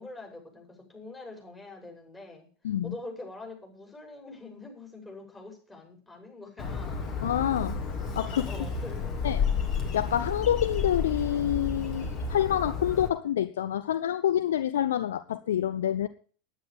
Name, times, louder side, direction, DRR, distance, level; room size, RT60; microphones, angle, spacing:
voice 1, 0.0-7.0 8.3-9.3, left 2 dB, 15° left, 6.7 m, -44 dB
Bird, 6.6-13.1, left 5 dB, 40° left, 2.6 m, -31 dB
voice 2, 7.2-7.8 8.1-8.5 9.2-9.4 9.9-16.1, left 10 dB, 65° left, 0.7 m, -27 dB
10.5 x 9.9 x 7.1 m
figure-of-eight pair, 85°, 0 cm